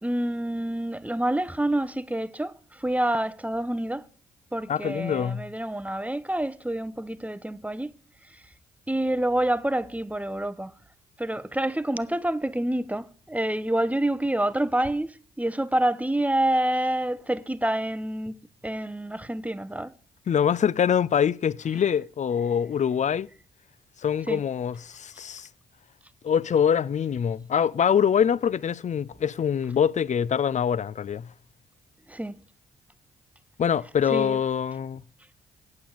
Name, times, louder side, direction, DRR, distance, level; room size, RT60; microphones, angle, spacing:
voice 1, 0.0-4.1 4.5-7.9 8.3-8.4 8.9-10.7 11.2-18.4 18.6-19.9 24.3-24.4 32.1-32.4 34.1-34.4, right 1 dB, 5° right, 0.8 m, -27 dB
voice 2, 4.7-5.5 20.3-23.3 24.0-25.5 26.2-31.3 33.6-35.0, left 8 dB, 35° left, 0.5 m, -24 dB
8.4 x 8.0 x 7.1 m
hypercardioid pair, 40°, 21 cm